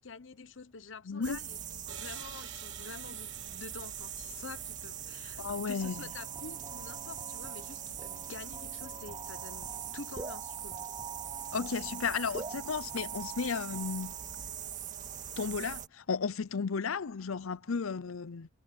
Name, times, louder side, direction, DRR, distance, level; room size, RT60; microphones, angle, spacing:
voice 1, 0.0-1.6 1.9-10.9, left 4 dB, 65° left, 1.0 m, -48 dB
voice 2, 1.1-1.4 5.4-5.9 11.5-14.1 15.4-18.5, left 5 dB, 85° left, 0.6 m, -34 dB
sound 1, 1.2-15.9, right 9 dB, 40° right, 1.8 m, -42 dB
sound 2, 1.9-5.7, right 10 dB, 65° right, 1.4 m, -52 dB
sound 3, 5.8-14.5, right 4 dB, 20° right, 0.6 m, -46 dB
head